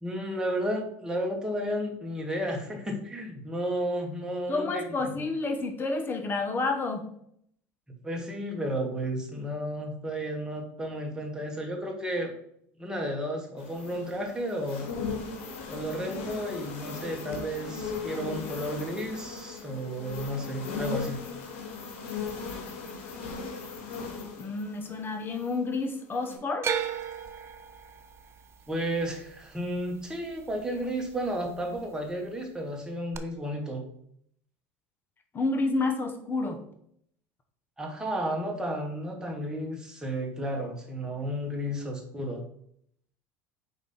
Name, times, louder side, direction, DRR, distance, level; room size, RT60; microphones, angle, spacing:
voice 1, 0.0-5.3 7.9-12.3 12.8-14.9 15.7-21.2 28.7-33.8 37.8-42.4, equal, 10° right, 1 dB, 1.9 m, -33 dB
voice 2, 4.5-7.1 24.4-26.7 35.3-36.6, left 3 dB, 30° left, 5 dB, 1.2 m, -29 dB
sound 1, 13.6-25.7 26.1-26.4, left 4 dB, 80° left, 1.5 m, -38 dB
sound 2, 26.6-30.8 31.1-31.8 33.1-33.2, right 8 dB, 40° right, 0.7 m, -35 dB
5.1 x 3.9 x 5.6 m, 0.68 s
supercardioid pair, 90°, 7 cm